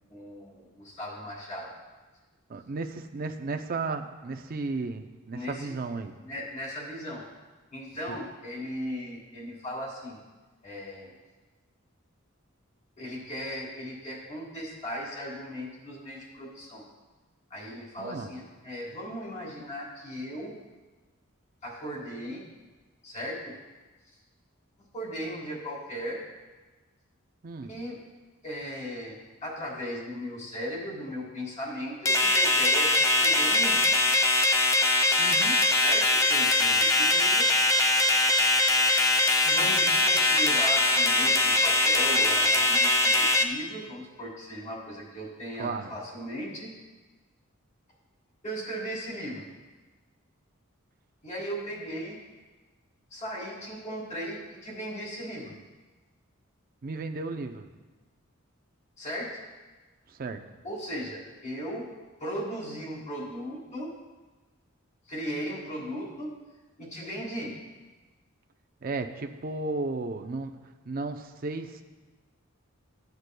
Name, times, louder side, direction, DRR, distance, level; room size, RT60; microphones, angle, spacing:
voice 1, 0.1-1.7 5.3-5.7 6.2-7.2 7.7-10.2 10.6-11.1 13.0-16.8 17.5-20.5 21.6-22.4 23.0-23.5 24.9-26.2 27.6-28.0 28.4-33.8 35.8-37.5 39.4-46.7 48.4-49.5 51.2-52.2 53.1-55.5 59.0-59.4 60.6-61.9 62.2-63.9 65.1-66.3 66.8-67.5, equal, 35° left, -4 dB, 3.1 m, -37 dB
voice 2, 2.5-6.1 8.1-8.2 18.0-18.3 27.4-27.7 35.2-35.6 45.6-45.9 56.8-57.7 60.1-60.4 68.8-71.8, right 3 dB, 45° right, 6 dB, 0.5 m, -34 dB
sound 1, 32.1-43.4, left 2 dB, 15° left, 0.5 m, -22 dB
15.5 x 8.1 x 2.2 m, 1.2 s
head